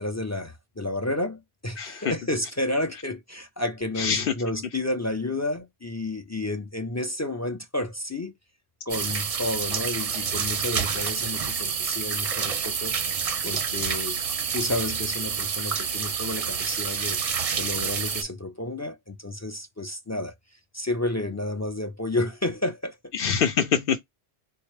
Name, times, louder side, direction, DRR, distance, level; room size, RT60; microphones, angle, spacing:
voice 1, 0.0-8.4 8.9-13.0 13.4-14.2 14.5-17.2 17.6-23.1, left 2 dB, 25° left, 0.4 m, -31 dB
voice 2, 1.8-2.1 4.0-4.3 23.1-24.0, left 7 dB, 65° left, 0.8 m, -24 dB
sound 1, 8.9-18.2, right 6 dB, 45° right, 0.5 m, -28 dB
4.3 x 2.2 x 3.1 m
omnidirectional pair, 1.1 m